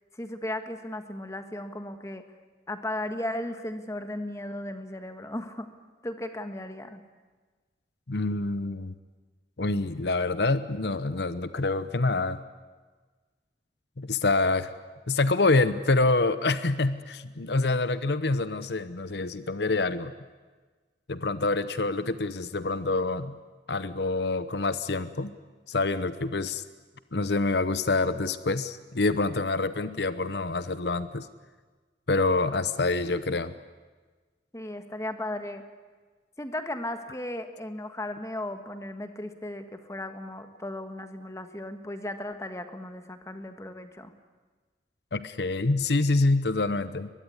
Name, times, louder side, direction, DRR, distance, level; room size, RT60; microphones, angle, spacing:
voice 1, 0.2-2.2 2.7-5.7 6.0-7.0 34.5-35.6 36.4-44.1, left 1 dB, 15° left, 8 dB, 1.6 m, -36 dB
voice 2, 8.1-8.9 9.6-12.4 14.0-14.7 15.1-20.1 21.1-23.4 23.7-25.3 25.7-26.6 27.1-31.3 32.1-33.5 45.1-47.1, left 3 dB, 75° left, 13 dB, 0.9 m, -26 dB
22.5 x 21.5 x 9.7 m, 1.4 s
head